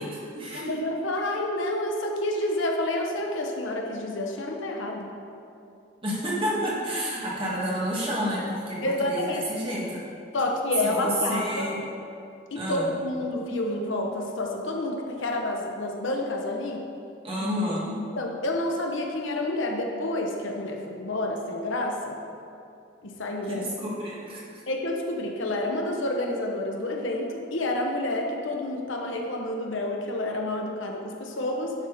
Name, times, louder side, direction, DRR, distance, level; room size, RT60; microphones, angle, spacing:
voice 1, 0.0-0.7 6.0-10.0 10.8-11.8 12.6-12.9 17.2-18.0 23.5-24.4, equal, 25° right, -6 dB, 1.8 m, -30 dB
voice 2, 0.5-5.1 8.8-9.4 10.3-11.7 12.5-16.8 17.4-17.5 18.2-22.2 23.0-23.7 24.7-31.7, left 1 dB, 75° left, 1 dB, 1.0 m, -29 dB
11.0 x 4.3 x 5.0 m, 2.6 s
head